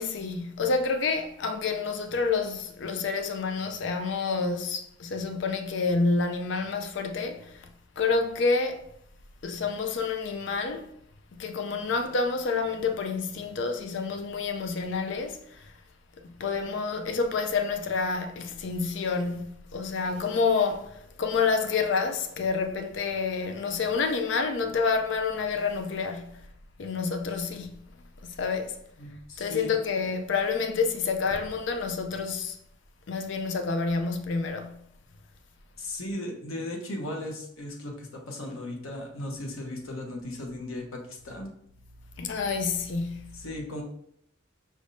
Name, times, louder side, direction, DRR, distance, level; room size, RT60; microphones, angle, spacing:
voice 1, 0.0-7.6 8.0-8.8 9.4-10.9 11.4-15.7 16.2-26.4 26.8-27.8 28.2-28.7 29.4-32.6 33.1-34.8 42.2-43.3, left 4 dB, 60° left, 0.4 m, -28 dB
voice 2, 29.0-29.7 35.8-41.5 43.3-43.8, left 1 dB, 90° left, 0.9 m, -36 dB
5.2 x 3.5 x 2.6 m
head